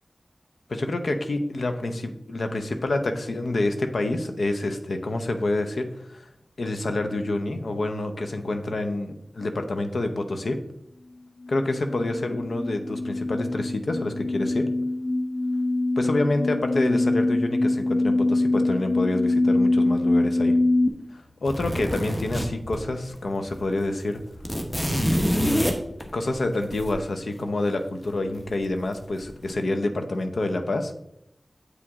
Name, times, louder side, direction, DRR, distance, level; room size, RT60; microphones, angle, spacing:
voice 1, 0.7-6.3 6.6-10.6 11.5-14.7 16.0-20.6 21.1-24.2 25.3-25.6 26.0-30.9, left 2 dB, 85° left, 7 dB, 0.7 m, -27 dB
sound 1, 11.4-20.9, left 2 dB, 55° left, 0.9 m, -24 dB
sound 2, 21.4-23.2 23.5-23.6 23.9-26.9 28.3-28.9 29.2-29.5, equal, 20° left, 1.2 m, -26 dB
8.2 x 4.9 x 3.6 m, 0.78 s
wide cardioid pair, 55°, 0 cm